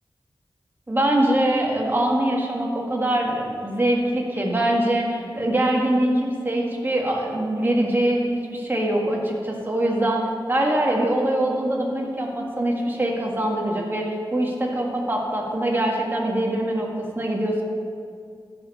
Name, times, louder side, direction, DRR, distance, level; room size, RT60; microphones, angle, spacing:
voice 1, 0.9-10.2 10.5-14.1 14.3-16.9 17.2-17.6, right 1 dB, 25° right, -1 dB, 1.8 m, -23 dB
13.0 x 5.5 x 5.6 m, 2.2 s
wide cardioid pair, 85°, 8 cm